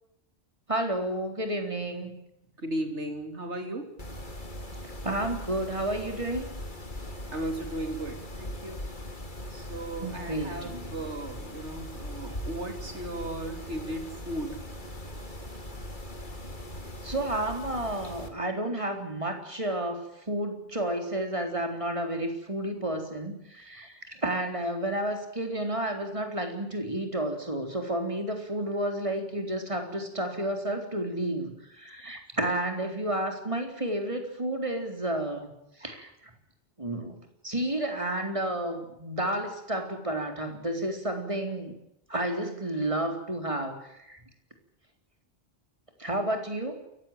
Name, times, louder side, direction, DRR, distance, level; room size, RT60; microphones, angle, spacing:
voice 1, 0.7-2.1 5.0-6.5 10.0-10.9 17.0-23.9 24.2-35.5 35.8-36.1 36.8-37.2 37.4-41.7 42.1-43.7 44.1-44.2 46.0-46.8, right 1 dB, 30° right, 4 dB, 4.1 m, -31 dB
voice 2, 2.6-3.9 7.3-8.8 9.5-14.6, right 1 dB, 80° right, 5 dB, 3.4 m, -36 dB
Mechanisms, 4.0-18.3, left 1 dB, 45° left, 3.1 m, -40 dB
28.0 x 15.5 x 9.0 m, 0.83 s
omnidirectional pair, 1.2 m